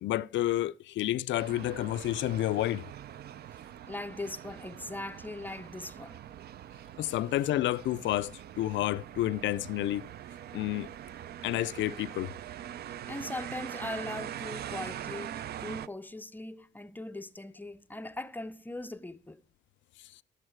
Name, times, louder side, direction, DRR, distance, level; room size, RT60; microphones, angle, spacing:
voice 1, 0.0-2.9 7.0-10.1 10.5-10.9 11.4-12.3, left 14 dB, 70° left, 0.4 m, -30 dB
sound 1, 1.4-15.9, right 11 dB, 55° right, 0.4 m, -43 dB
voice 2, 3.9-6.2 13.1-19.4, left 2 dB, 10° left, 0.5 m, -40 dB
11.5 x 8.1 x 4.5 m
cardioid pair, 90°, 20 cm